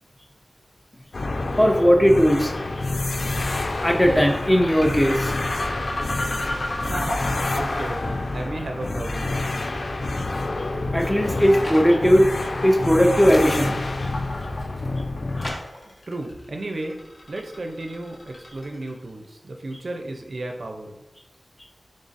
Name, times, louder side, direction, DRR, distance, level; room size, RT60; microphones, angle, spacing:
sound 1, 1.1-15.5, left 2 dB, 65° left, 0.3 m, -28 dB
voice 1, 1.6-2.5 3.8-5.3 10.9-12.3 12.6-13.8, equal, 10° left, 3 dB, 0.5 m, -18 dB
sound 2, 3.0-19.1, left 1 dB, 80° left, 1.0 m, -34 dB
voice 2, 6.8-7.2 7.6-9.4 16.1-17.0 17.3-21.0, right 2 dB, 70° right, 3 dB, 0.4 m, -33 dB
sound 3, 11.0-12.1 12.6-13.0 13.3-13.5 14.1-14.9 15.4-15.9, left 1 dB, 45° left, 0.9 m, -38 dB
3.9 x 3.7 x 2.5 m, 0.91 s
wide cardioid pair, 80°, 0 cm